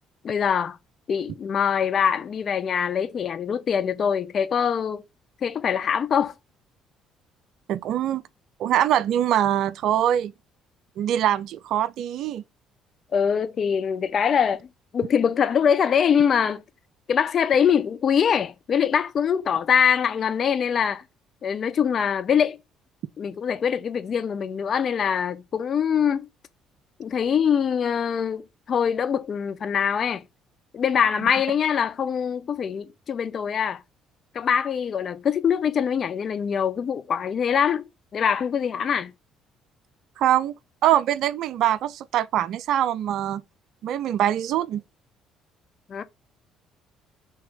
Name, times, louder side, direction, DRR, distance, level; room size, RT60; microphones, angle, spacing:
voice 1, 0.2-0.8 1.1-5.0 5.4-6.3 13.1-16.6 17.1-21.0 21.4-22.6 23.2-26.3 27.0-30.2 30.7-33.8 34.3-39.1 45.9-46.0, left 7 dB, 50° left, 0.9 m, -23 dB
voice 2, 7.7-8.2 8.6-10.3 11.0-12.4 40.2-40.5 40.8-43.4 43.8-44.8, right 11 dB, 65° right, 0.4 m, -23 dB
5.4 x 3.5 x 5.3 m
hypercardioid pair, 50°, 0 cm